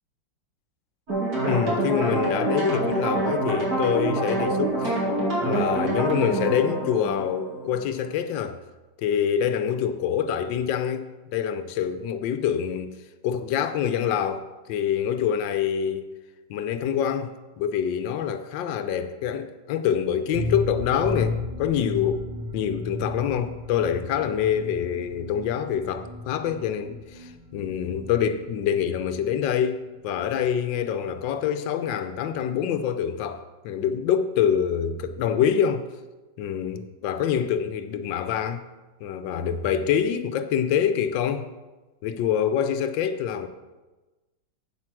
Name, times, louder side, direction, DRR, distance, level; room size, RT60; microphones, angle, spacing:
sound 1, 1.1-8.1, right 2 dB, 55° right, 3.0 m, -26 dB
voice 1, 1.5-5.0 5.4-8.6 9.0-13.0 13.2-16.0 16.5-22.2 22.5-35.9 36.4-38.6 39.0-41.5 42.0-43.5, left 8 dB, 90° left, 1.4 m, -26 dB
sound 2, 20.3-29.9 30.2-30.3 30.6-30.7, left 2 dB, 40° right, 0.8 m, -35 dB
8.1 x 7.6 x 6.0 m
omnidirectional pair, 2.0 m